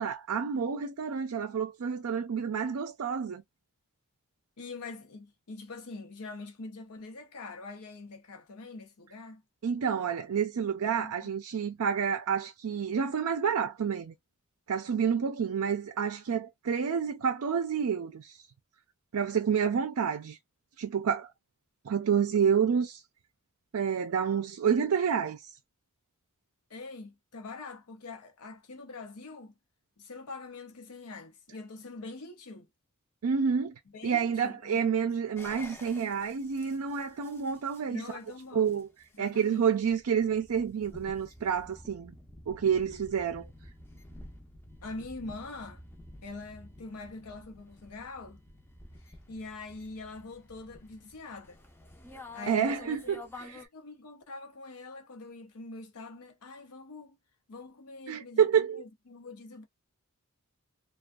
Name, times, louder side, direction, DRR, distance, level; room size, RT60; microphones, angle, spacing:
voice 1, 0.0-3.4 9.6-14.1 14.7-18.4 19.1-20.4 20.8-21.3 21.8-23.0 23.7-25.5 33.2-33.7 34.0-38.0 38.5-38.9 39.2-42.1 42.5-43.5 52.5-53.6 58.1-58.8, right 7 dB, 70° right, 0.4 m, -29 dB
voice 2, 4.6-9.4 10.8-11.3 26.7-29.5 30.0-32.7 33.9-34.7 35.0-35.1 37.9-38.7 39.2-39.7 44.8-45.8 46.2-48.4 49.1-51.6 52.3-52.7 53.4-57.2 57.5-59.6, left 3 dB, 90° left, 0.7 m, -44 dB
sound 1, 35.4-53.7, left 2 dB, 10° left, 0.5 m, -51 dB
2.5 x 2.3 x 2.2 m
head